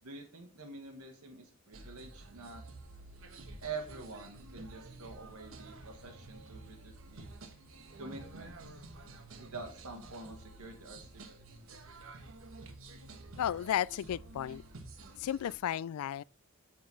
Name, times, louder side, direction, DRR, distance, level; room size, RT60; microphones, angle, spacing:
voice 1, 0.0-2.6 3.6-7.3 8.0-8.8 9.4-11.4, right 3 dB, 85° right, 1.6 m, -46 dB
sound 1, 1.7-15.5, right 2 dB, 65° right, 1.2 m, -51 dB
voice 2, 13.4-14.6 15.2-16.2, left 10 dB, 80° left, 0.3 m, -33 dB
6.2 x 5.7 x 6.8 m
head